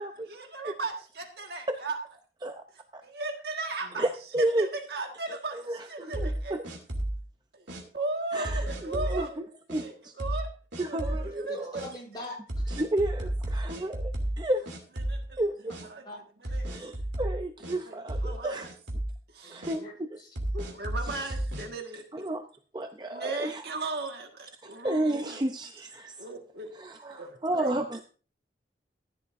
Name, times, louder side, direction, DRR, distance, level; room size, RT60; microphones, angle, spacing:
voice 1, 0.3-2.0 3.0-4.1 4.4-6.6 7.5-7.6 7.9-9.4 9.8-10.5 10.9-11.8 13.7-13.9 15.1-15.4 15.9-16.1 16.4-16.9 17.9-18.7 19.3-19.6 20.5-22.3 23.1-25.4 26.2-26.7 27.1-27.7, right 3 dB, 60° right, 3 dB, 1.6 m, -36 dB
voice 2, 4.0-4.7 5.3-6.6 8.3-10.1 10.8-11.9 12.7-14.7 15.4-15.7 16.7-18.7 19.5-20.2 21.0-21.3 22.1-22.4 22.7-23.6 24.6-26.3 26.7-28.0, right 1 dB, 25° right, 6 dB, 0.5 m, -32 dB
sound 1, 6.1-7.2 7.7-7.8 8.4-9.2 9.7-9.8 10.2-10.5 10.7-11.3 11.7-11.9 12.5-14.4 14.7-15.4 15.7-15.8 16.4-17.8 18.1-18.4 18.6-19.1 19.6-19.8 20.4-21.7, right 1 dB, 80° right, 2.8 m, -32 dB
voice 3, 11.5-12.7 16.0-16.6 19.4-19.9 20.2-20.3 20.6-20.7, left 1 dB, 25° left, -3 dB, 7.1 m, -44 dB
15.0 x 10.5 x 2.6 m, 0.38 s
head